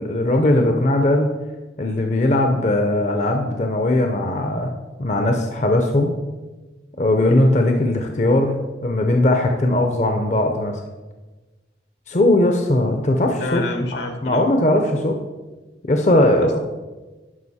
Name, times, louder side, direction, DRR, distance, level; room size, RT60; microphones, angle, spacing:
voice 1, 0.0-1.3 1.8-4.7 5.0-6.2 7.0-10.8 12.1-13.6 14.2-15.2 15.8-16.6, left 1 dB, 40° left, 4 dB, 0.6 m, -19 dB
voice 2, 13.4-14.5 16.4-16.6, left 2 dB, 80° left, 4 dB, 1.4 m, -29 dB
11.0 x 5.1 x 4.2 m, 1.2 s
head